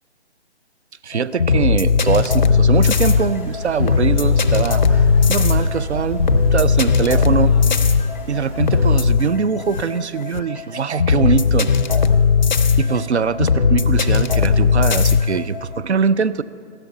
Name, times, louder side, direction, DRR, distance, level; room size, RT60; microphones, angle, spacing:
voice 1, 1.0-6.2 6.5-7.5 8.3-11.7 12.8-16.4, right 6 dB, 75° right, 16 dB, 0.6 m, -22 dB
sound 1, 1.1-15.8, left 5 dB, 45° left, 0.4 m, -17 dB
sound 2, 2.7-9.0, right 1 dB, 10° right, 0.6 m, -28 dB
15.5 x 12.5 x 3.8 m, 2.3 s
figure-of-eight pair, 150°, 34 cm